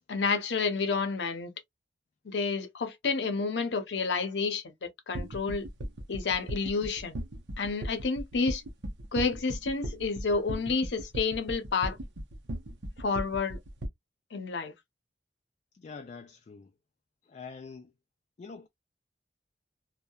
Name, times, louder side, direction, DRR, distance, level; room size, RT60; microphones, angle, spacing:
voice 1, 0.1-1.5 2.2-4.7 5.1-5.7 6.1-7.2 7.6-8.6 9.1-12.0 13.0-13.6 14.3-14.7, left 4 dB, 75° left, 0.6 m, -30 dB
sound 1, 5.1-13.9, right 1 dB, 90° right, 0.6 m, -37 dB
voice 2, 15.7-16.7 17.2-17.9 18.4-18.7, left 5 dB, 40° left, 0.3 m, -45 dB
2.7 x 2.1 x 2.2 m
head